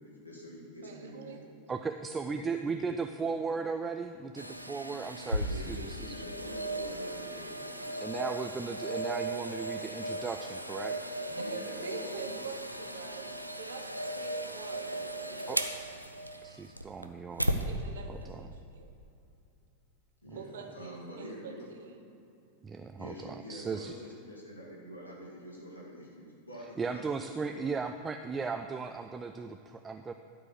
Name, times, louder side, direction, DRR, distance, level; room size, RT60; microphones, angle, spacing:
voice 1, 0.0-1.4 2.2-2.4 2.7-2.8 5.4-8.2 11.3-12.4 20.2-21.7 23.0-27.8, equal, 75° left, -5 dB, 2.1 m, -46 dB
voice 2, 0.8-1.4 11.4-15.6 17.5-18.9 20.3-22.0, right 5 dB, 60° right, 3 dB, 1.1 m, -46 dB
voice 3, 1.7-6.2 8.0-11.0 15.5-15.6 16.4-17.5 18.1-18.5 22.6-23.9 26.8-30.1, right 4 dB, 15° right, 7 dB, 0.3 m, -36 dB
sound 1, 4.4-17.7 18.2-18.3, right 1 dB, 90° right, 0.5 m, -36 dB
12.5 x 4.8 x 6.8 m, 2.7 s
figure-of-eight pair, 90°, 0 cm